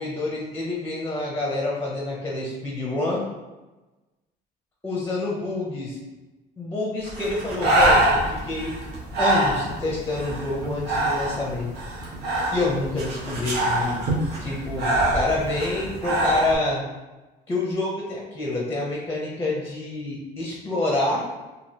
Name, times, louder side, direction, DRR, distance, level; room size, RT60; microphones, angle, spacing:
voice 1, 0.0-3.2 4.8-6.0 6.6-8.7 9.2-11.7 12.5-14.0 14.4-16.8 17.5-21.2, left 2 dB, 15° left, -3 dB, 0.7 m, -27 dB
Breathing, 7.1-16.5, right 1 dB, 70° right, 1.0 m, -25 dB
3.1 x 2.7 x 2.7 m, 1.1 s
cardioid pair, 110°, 17 cm